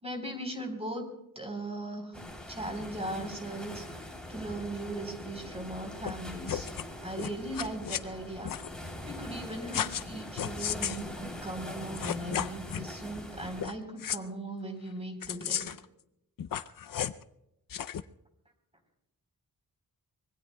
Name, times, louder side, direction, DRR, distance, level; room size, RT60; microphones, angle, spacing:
voice 1, 0.0-1.1 1.4-3.9 4.3-6.7 7.0-8.5 8.8-15.7, right 1 dB, 20° right, 4 dB, 3.7 m, -38 dB
sound 1, 2.1-13.7, left 1 dB, ahead, 3.2 m, -43 dB
sound 2, 6.0-6.1 6.4-6.9 7.1-8.0 8.4-8.7 9.7-10.1 10.4-11.0 11.7-11.8 11.9-12.9 13.6-13.7 14.0-14.2 15.2-15.8 16.4-17.2 17.7-18.0, left 9 dB, 70° left, 0.6 m, -34 dB
25.0 x 21.5 x 2.2 m, 0.83 s
wide cardioid pair, 120°, 34 cm